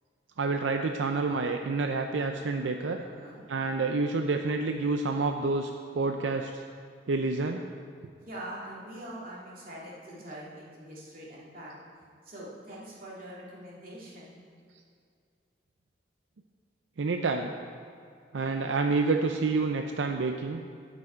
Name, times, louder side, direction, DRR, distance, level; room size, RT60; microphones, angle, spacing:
voice 1, 0.4-3.0 3.5-6.6 7.1-7.6 17.0-17.5 18.3-20.6, right 3 dB, 85° right, 4 dB, 0.5 m, -28 dB
voice 2, 2.9-3.4 8.2-11.7 12.2-14.4, right 1 dB, 55° right, -5 dB, 2.5 m, -43 dB
16.5 x 6.1 x 4.5 m, 2.3 s
head